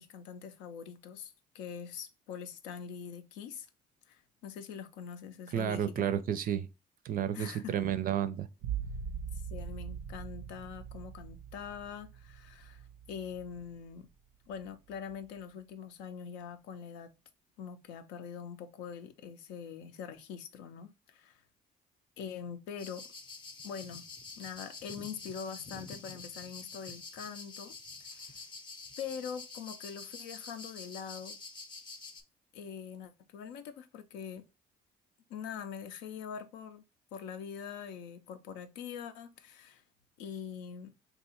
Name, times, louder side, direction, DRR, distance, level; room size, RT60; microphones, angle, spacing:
voice 1, 0.0-3.7 4.1-6.0 7.3-7.7 9.3-14.1 14.5-17.1 17.6-21.4 22.2-23.1 23.6-24.1 24.4-27.7 28.0-28.4 29.0-31.4 32.5-34.4 35.3-36.8 37.1-39.8 40.2-40.9, left 7 dB, 85° left, 0.5 m, -43 dB
voice 2, 5.5-6.7 7.0-8.5, right 9 dB, 50° right, 0.4 m, -31 dB
sound 1, 8.6-14.1 14.5-15.1, right 7 dB, 90° right, 0.6 m, -42 dB
sound 2, 22.8-32.2, left 3 dB, 25° left, 0.6 m, -47 dB
2.7 x 2.3 x 4.1 m
supercardioid pair, 70°, 19 cm